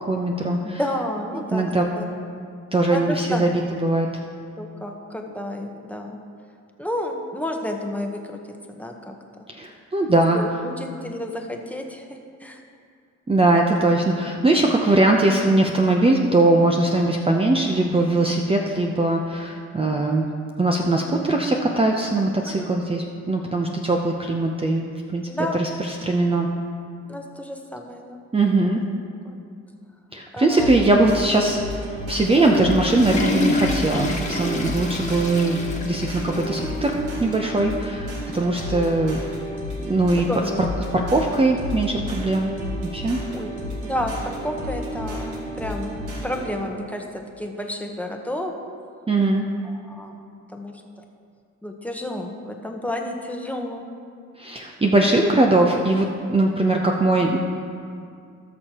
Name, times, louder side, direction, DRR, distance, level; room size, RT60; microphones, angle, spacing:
voice 1, 0.0-0.8 1.5-1.9 2.7-4.1 9.5-10.4 13.3-20.3 20.6-25.2 25.5-26.5 28.3-28.8 30.1-31.6 32.1-36.9 37.2-39.2 39.8-40.3 40.9-42.5 42.9-43.2 49.1-49.4 54.4-57.4, right 2 dB, 20° right, 0 dB, 0.7 m, -21 dB
voice 2, 0.6-2.1 2.9-3.5 4.6-6.2 6.8-8.4 8.8-9.1 10.1-12.6 19.8-20.2 20.9-21.2 22.5-22.8 25.3-25.8 27.1-28.2 29.2-29.3 30.3-30.7 34.6-34.8 37.6-37.8 40.2-40.6 43.3-43.5 43.8-48.5 49.8-50.1 50.5-50.8 51.6-53.8, left 1 dB, 5° left, 2 dB, 1.1 m, -31 dB
sound 1, 30.6-46.6, equal, 80° right, 2.3 m, -31 dB
Water / Toilet flush, 32.0-37.0 37.3-37.4 38.2-38.3 39.5-39.6, left 2 dB, 25° left, 1.5 m, -28 dB
18.0 x 6.5 x 3.0 m, 2.3 s
cardioid pair, 90°, 30 cm